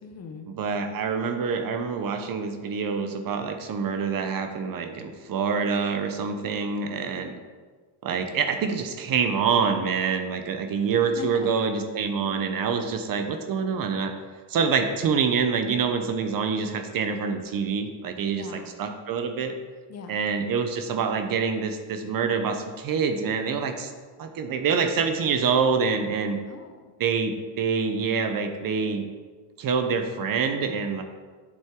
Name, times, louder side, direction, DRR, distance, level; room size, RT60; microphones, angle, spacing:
voice 1, 0.0-0.5 11.0-11.5 18.3-18.8 19.9-20.2 26.5-26.8, left 4 dB, 30° left, 5 dB, 0.7 m, -40 dB
voice 2, 0.6-7.3 8.0-14.1 14.5-19.5 20.1-23.9 24.2-26.4 27.0-29.1 29.6-31.0, right 5 dB, 45° right, 7 dB, 0.7 m, -26 dB
7.5 x 6.3 x 3.6 m, 1.4 s
cardioid pair, 125°, 50 cm